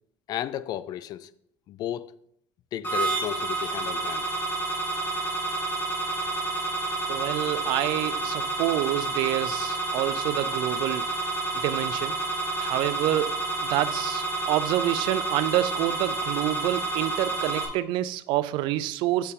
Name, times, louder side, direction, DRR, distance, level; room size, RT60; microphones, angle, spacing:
voice 1, 0.3-1.3 1.7-2.1 2.7-4.3, left 12 dB, 55° left, 0.4 m, -33 dB
sound 1, 2.8-17.7, right 3 dB, 25° left, 1.6 m, -29 dB
voice 2, 7.1-11.1 11.6-12.1 12.6-19.3, right 14 dB, 75° right, 0.4 m, -27 dB
7.2 x 6.6 x 3.6 m
cardioid pair, 140°, 8 cm